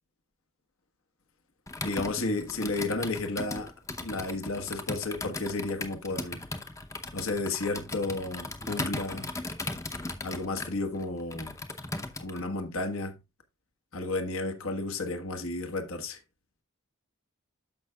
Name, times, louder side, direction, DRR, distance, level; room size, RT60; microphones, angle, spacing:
Computer keyboard, 1.7-12.4, left 2 dB, 15° left, 0.7 m, -37 dB
voice 1, 1.8-3.7 4.0-6.4 7.1-9.3 10.2-11.6 12.2-13.2 13.9-16.2, left 2 dB, 65° left, 1.3 m, -32 dB
12.5 x 5.6 x 2.3 m
head